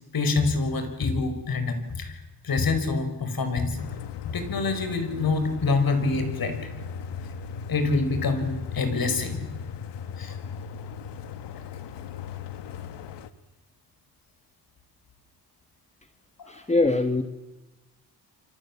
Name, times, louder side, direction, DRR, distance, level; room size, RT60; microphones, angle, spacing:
voice 1, 0.1-3.8 4.2-6.7 7.7-9.5 10.2-10.4 16.4-16.6, left 3 dB, 60° left, 8 dB, 5.3 m, -26 dB
sound 1, 3.8-13.3, left 7 dB, 90° left, 1.6 m, -37 dB
voice 2, 16.5-17.2, left 2 dB, 15° left, 8 dB, 1.9 m, -23 dB
30.0 x 24.5 x 7.4 m, 1.1 s
cardioid pair, 85°, 40 cm